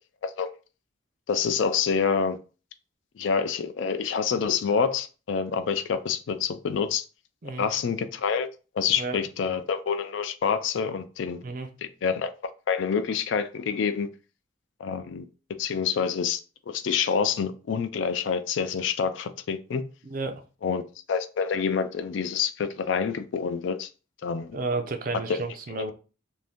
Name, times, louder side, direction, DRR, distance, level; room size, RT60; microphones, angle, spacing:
voice 1, 1.3-2.4 3.2-7.1 7.6-8.5 8.7-11.4 12.0-12.3 12.7-14.1 14.8-15.3 15.6-19.8 20.6-20.8 21.1-23.9 24.2-24.6 25.3-25.4 25.7-25.9, left 6 dB, 70° left, 0.4 m, -27 dB
voice 2, 20.0-20.4 24.5-25.9, right 3 dB, 45° right, 0.4 m, -31 dB
2.6 x 2.6 x 3.5 m
head